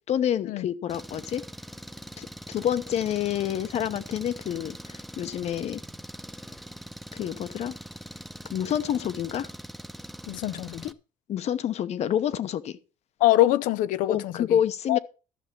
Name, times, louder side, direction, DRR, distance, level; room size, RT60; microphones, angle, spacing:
voice 1, 0.1-1.4 2.2-5.8 7.1-7.7 8.5-9.5 11.3-12.8 14.1-15.0, left 10 dB, 55° left, 0.9 m, -28 dB
Engine, 0.9-10.9, equal, ahead, 0.8 m, -42 dB
voice 2, 10.3-10.9 13.2-14.6 14.9-15.0, left 15 dB, 75° left, 0.6 m, -24 dB
13.0 x 6.6 x 6.1 m
cardioid pair, 120°, 14 cm